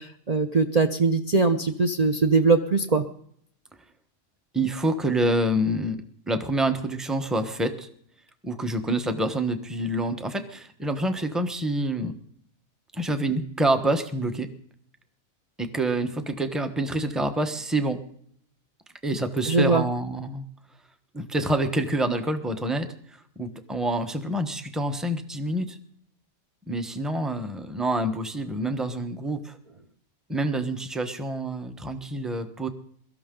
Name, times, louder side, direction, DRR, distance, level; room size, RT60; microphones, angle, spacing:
voice 1, 0.0-3.0 19.5-19.8, right 4 dB, 35° right, 5 dB, 0.8 m, -21 dB
voice 2, 4.5-6.0 6.3-7.9 8.4-12.1 12.9-14.5 15.6-18.0 19.0-20.4 21.1-25.8 26.7-29.6 30.3-32.7, right 1 dB, ahead, 7 dB, 1.0 m, -27 dB
23.0 x 13.0 x 3.9 m, 0.64 s
omnidirectional pair, 1.4 m